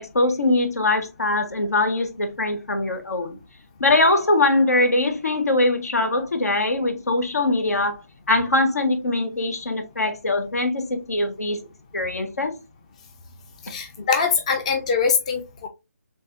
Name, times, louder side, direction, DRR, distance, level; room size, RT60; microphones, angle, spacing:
voice 1, 0.0-3.4 3.8-8.0 8.3-11.6 11.9-12.6, left 2 dB, 80° left, 1.2 m, -22 dB
voice 2, 13.6-15.7, left 5 dB, 25° left, 0.5 m, -23 dB
4.1 x 3.3 x 2.6 m
hypercardioid pair, 165°, 8 cm